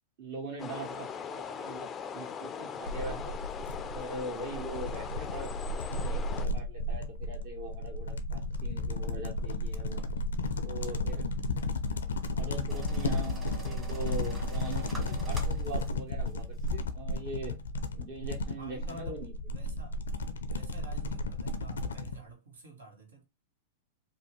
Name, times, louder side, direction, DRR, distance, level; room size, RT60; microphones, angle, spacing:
voice 1, 0.2-1.9 2.1-3.4 3.9-10.0 10.6-11.3 12.3-17.5 17.9-19.3, right 2 dB, 55° right, 1.5 m, -42 dB
sound 1, 0.6-6.5, left 7 dB, 25° left, 0.3 m, -40 dB
sound 2, 2.9-22.2, left 2 dB, 90° left, 0.4 m, -34 dB
sound 3, 12.7-15.9 16.3-16.4 16.6-16.7, equal, 20° right, 1.3 m, -43 dB
voice 2, 18.6-20.0 20.5-23.2, right 3 dB, 85° right, 1.2 m, -49 dB
2.8 x 2.1 x 3.1 m
hypercardioid pair, 115°, 0 cm